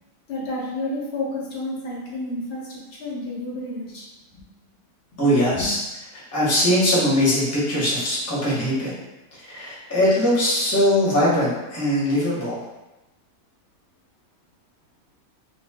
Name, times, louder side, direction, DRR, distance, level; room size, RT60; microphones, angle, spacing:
voice 1, 0.3-4.0 4.3-4.4 5.5-5.7, left 1 dB, 55° left, -4 dB, 0.8 m, -30 dB
voice 2, 5.2-5.8 6.1-8.9 9.4-12.6, equal, 15° left, -8 dB, 0.8 m, -21 dB
2.4 x 2.3 x 3.3 m, 1.0 s
omnidirectional pair, 1.6 m